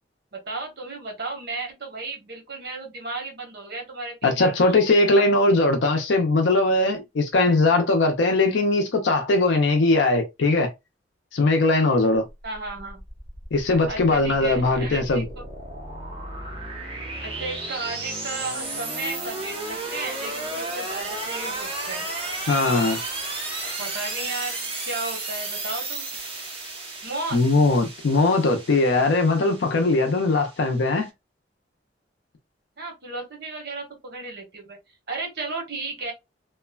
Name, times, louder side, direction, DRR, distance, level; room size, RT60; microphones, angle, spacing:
voice 1, 0.3-5.3 12.4-13.0 13.9-15.4 17.2-22.1 23.6-26.1 27.0-27.4 32.8-34.8 35.1-36.1, right 3 dB, 60° right, 1.0 m, -34 dB
voice 2, 4.2-10.7 11.3-12.3 13.5-15.2 22.5-23.0 27.3-31.1, left 2 dB, 85° left, 0.5 m, -20 dB
sound 1, 12.4-31.0, right 2 dB, 30° right, 0.8 m, -34 dB
3.0 x 2.1 x 2.2 m
head